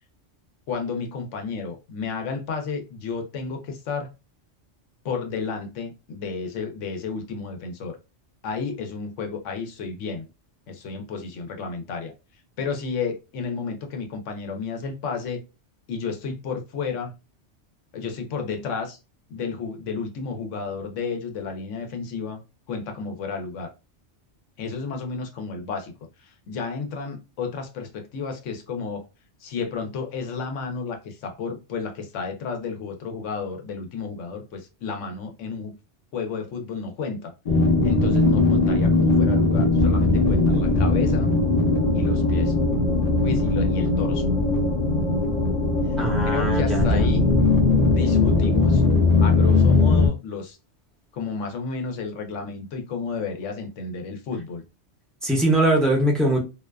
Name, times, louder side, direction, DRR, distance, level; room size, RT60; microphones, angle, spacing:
voice 1, 0.7-4.1 5.0-8.0 8.4-10.3 10.7-12.1 12.6-15.4 15.9-17.1 17.9-19.0 19.3-22.4 22.7-23.7 24.6-25.9 26.2-29.0 29.4-35.8 36.1-37.3 37.8-41.3 41.9-42.5 43.2-44.2 46.2-47.3 47.9-48.8 49.2-50.6 51.1-54.6, left 5 dB, 90° left, 1.0 m, -32 dB
sound 1, 37.5-50.1, left 3 dB, 45° left, 0.6 m, -19 dB
voice 2, 46.0-47.0 55.2-56.4, right 1 dB, ahead, 0.4 m, -21 dB
2.5 x 2.2 x 2.2 m
omnidirectional pair, 1.2 m